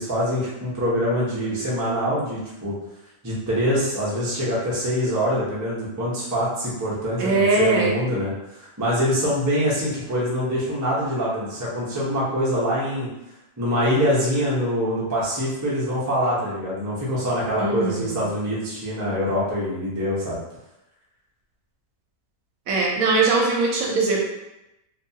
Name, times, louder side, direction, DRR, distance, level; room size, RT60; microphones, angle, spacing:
voice 1, 0.0-2.7 3.2-8.3 8.6-13.1 13.6-20.4, equal, 20° right, -8 dB, 0.4 m, -24 dB
voice 2, 7.2-7.9 17.6-18.3 22.7-24.2, right 3 dB, 70° right, -3 dB, 1.0 m, -21 dB
2.6 x 2.3 x 2.7 m, 0.92 s
omnidirectional pair, 1.6 m